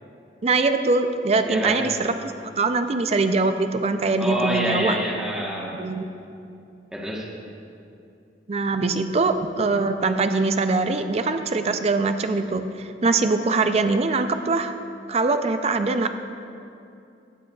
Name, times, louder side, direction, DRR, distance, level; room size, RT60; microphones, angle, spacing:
voice 1, 0.4-5.0 5.7-6.1 8.5-14.7 15.1-16.1, right 3 dB, 35° right, 8 dB, 0.4 m, -23 dB
voice 2, 1.4-1.9 4.2-5.9 6.9-7.3, equal, 5° right, -3 dB, 1.1 m, -26 dB
16.5 x 7.7 x 2.3 m, 2.6 s
head